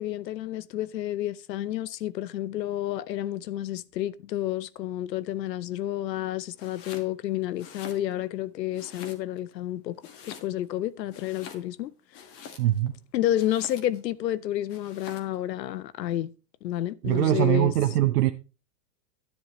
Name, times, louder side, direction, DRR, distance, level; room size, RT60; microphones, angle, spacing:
voice 1, 0.0-10.0 10.3-11.9 13.1-16.3 16.6-17.7, left 13 dB, 90° left, 0.7 m, -30 dB
Domestic sounds home sounds, 6.5-7.1 7.5-8.4 8.7-9.5 10.0-10.8 11.1-12.9 13.4-14.1 14.7-15.4, left 7 dB, 25° left, 1.5 m, -46 dB
voice 2, 12.6-12.9 17.0-18.3, right 14 dB, 70° right, 0.8 m, -22 dB
10.0 x 10.0 x 3.1 m
hypercardioid pair, 145°, 49 cm